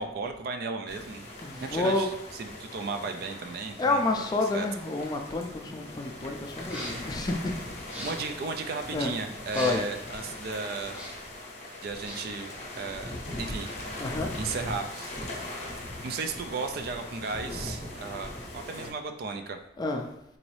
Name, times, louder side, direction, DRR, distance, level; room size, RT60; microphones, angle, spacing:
voice 1, 0.0-1.3 1.6-4.0 4.5-4.7 6.8-6.9 7.2-7.3 8.0-11.0 11.8-13.7 14.3-15.2 16.0-19.6, right 4 dB, 55° right, 6 dB, 0.3 m, -35 dB
sound 1, 0.9-18.9, left 1 dB, 35° left, 0.7 m, -40 dB
voice 2, 1.4-2.1 3.8-7.7 8.9-9.2 9.5-9.8 14.0-14.3 19.8-20.1, left 2 dB, 20° left, 3 dB, 0.3 m, -29 dB
sound 2, 6.6-7.1 7.8-8.4 9.4-10.0 10.8-11.3 11.8-12.4, equal, 10° right, 0.7 m, -41 dB
3.9 x 2.6 x 3.1 m, 0.79 s
head